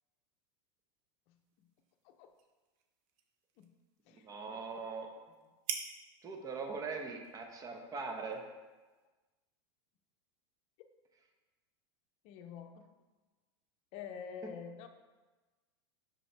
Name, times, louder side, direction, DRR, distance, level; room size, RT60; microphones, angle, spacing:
sound 1, 1.3-9.1, right 7 dB, 50° right, 0.7 m, -49 dB
voice 1, 4.2-5.1 6.2-8.4, right 4 dB, 25° right, 3 dB, 0.9 m, -41 dB
voice 2, 12.2-12.9 13.9-14.9, left 7 dB, 50° left, 7 dB, 0.6 m, -47 dB
5.7 x 5.2 x 3.3 m, 1.2 s
hypercardioid pair, 105°, 14 cm